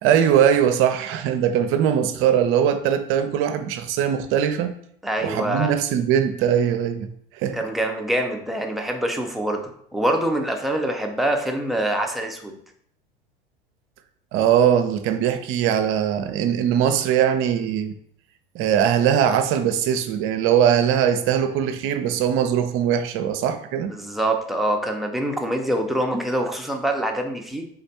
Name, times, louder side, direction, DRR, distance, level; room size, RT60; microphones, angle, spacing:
voice 1, 0.0-4.7 5.2-7.6 14.3-17.9 18.5-23.9, right 9 dB, 45° right, 0.6 m, -21 dB
voice 2, 5.0-5.7 7.5-12.6 23.9-27.7, right 1 dB, ahead, 0.7 m, -25 dB
3.8 x 3.3 x 4.2 m
hypercardioid pair, 80°, 29 cm